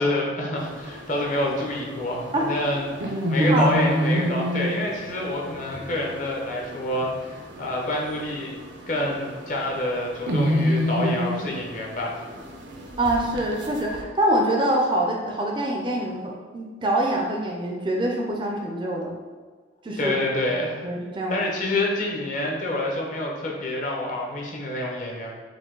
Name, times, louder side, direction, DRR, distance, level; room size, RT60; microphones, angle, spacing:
voice 1, 0.0-8.5 8.9-12.2 20.0-20.8 21.3-25.3, left 1 dB, 40° left, -2 dB, 0.7 m, -27 dB
sound 1, 0.6-14.0, equal, 70° right, 0.6 m, -29 dB
voice 2, 3.4-3.7 13.0-19.1 19.8-20.1 20.8-21.4, right 1 dB, 25° right, 0 dB, 0.4 m, -25 dB
4.8 x 2.2 x 3.7 m, 1.5 s
head